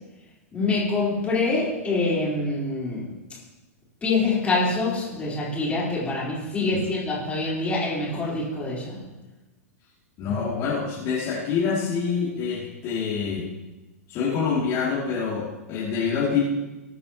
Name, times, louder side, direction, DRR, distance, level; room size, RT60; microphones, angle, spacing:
voice 1, 0.5-3.1 4.0-9.0, left 3 dB, 15° left, -5 dB, 3.9 m, -25 dB
voice 2, 10.2-13.4 14.1-16.5, left 5 dB, 35° left, -7 dB, 2.7 m, -26 dB
20.5 x 8.3 x 2.9 m, 1.1 s
figure-of-eight pair, 100°, 8 cm